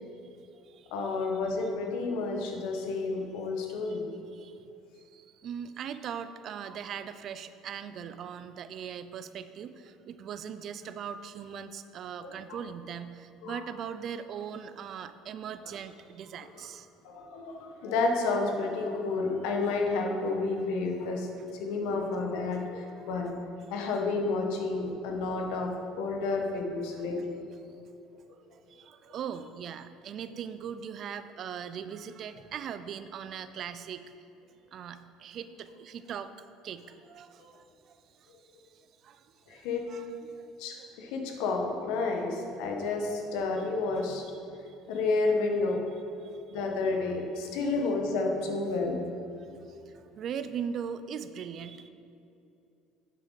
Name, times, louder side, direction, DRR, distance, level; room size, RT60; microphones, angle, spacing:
voice 1, 0.9-4.0 12.2-12.3 13.4-13.6 16.6-16.7 17.0-23.4 23.7-25.7 26.0-27.4 39.5-39.9 40.6-44.2 44.9-45.8 46.5-49.0, left 3 dB, 75° left, 2 dB, 1.3 m, -30 dB
voice 2, 4.3-4.7 5.1-16.9 23.0-23.2 25.4-25.7 26.5-26.6 26.9-27.2 28.5-34.0 34.7-36.3 36.6-38.3 38.7-40.5 44.7-44.8 46.2-46.6 47.6-47.7 49.4-51.9, right 8 dB, 50° right, 12 dB, 0.4 m, -40 dB
9.0 x 7.8 x 4.1 m, 2.8 s
supercardioid pair, 100°, 0 cm